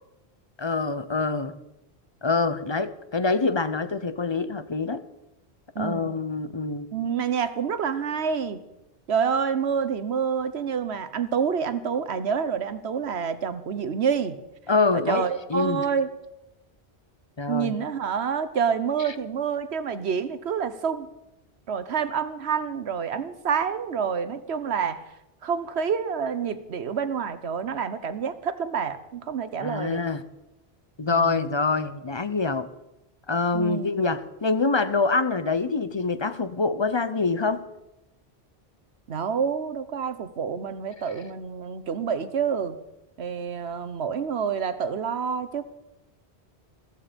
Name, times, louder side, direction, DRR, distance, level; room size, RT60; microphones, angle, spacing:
voice 1, 0.6-1.5 2.2-5.0 5.8-6.9 14.7-15.9 17.4-17.7 29.6-30.2 31.0-32.7 33.3-37.6, left 3 dB, 30° left, 13 dB, 0.7 m, -25 dB
voice 2, 5.7-6.1 6.9-8.6 9.1-14.4 14.9-16.1 17.5-21.1 21.7-25.0 25.4-30.0 31.1-31.5 33.5-33.9 39.1-42.8 43.2-45.6, right 6 dB, 75° right, 13 dB, 1.2 m, -28 dB
15.0 x 14.5 x 5.2 m, 0.91 s
omnidirectional pair, 1.1 m